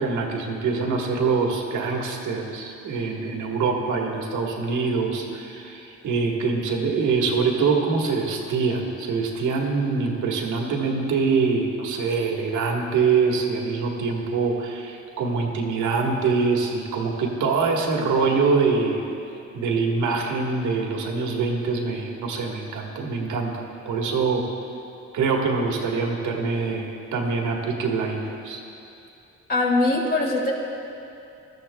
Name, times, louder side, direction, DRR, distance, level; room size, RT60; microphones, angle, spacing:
voice 1, 0.0-19.0 19.5-24.5 25.1-28.6, right 4 dB, 80° right, 0 dB, 1.6 m, -24 dB
voice 2, 29.5-30.5, left 2 dB, 35° left, -3 dB, 2.8 m, -21 dB
19.0 x 13.0 x 2.3 m, 2.7 s
cardioid pair, 90°, 30 cm